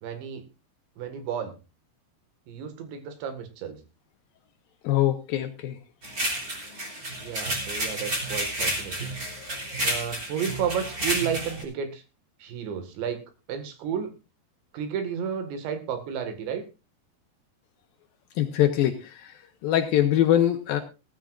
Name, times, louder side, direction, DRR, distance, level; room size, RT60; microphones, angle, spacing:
voice 1, 0.0-0.5 1.0-1.6 2.5-3.8 7.0-9.1 9.5-12.0 12.4-13.2 13.5-14.1 14.7-16.6, right 7 dB, 85° right, 7 dB, 4.1 m, -32 dB
voice 2, 4.8-5.8 18.4-19.3 19.6-20.8, left 12 dB, 75° left, 7 dB, 2.3 m, -23 dB
sound 1, 6.0-11.6, right 1 dB, 20° right, 3.3 m, -30 dB
17.5 x 14.0 x 2.5 m, 0.29 s
omnidirectional pair, 5.0 m